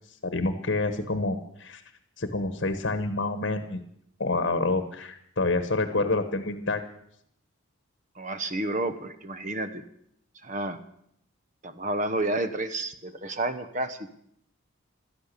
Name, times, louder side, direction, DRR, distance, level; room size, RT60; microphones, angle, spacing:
voice 1, 0.2-1.8 2.2-3.8 4.2-6.8, left 2 dB, 55° left, 9 dB, 1.2 m, -28 dB
voice 2, 8.2-9.8 10.4-10.8 11.6-14.0, right 2 dB, 35° right, 11 dB, 1.0 m, -30 dB
16.0 x 13.0 x 6.7 m, 0.72 s
head